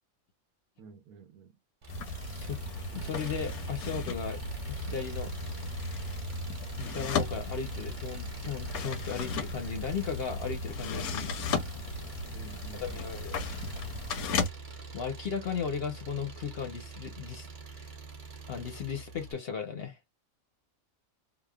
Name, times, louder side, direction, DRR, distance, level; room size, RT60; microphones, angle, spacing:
voice 1, 0.8-1.6 12.3-13.2, right 5 dB, 85° right, 1.2 m, -51 dB
Engine, 1.8-19.3, right 4 dB, 45° right, 0.6 m, -45 dB
sound 1, 1.9-14.5, left 3 dB, 85° left, 1.1 m, -35 dB
voice 2, 2.3-2.6 2.9-4.4 4.7-5.6 6.8-11.4 12.8-13.4 14.9-17.5 17.8-17.9 18.5-20.0, left 6 dB, 55° left, 0.8 m, -36 dB
3.1 x 2.1 x 2.2 m
omnidirectional pair, 1.5 m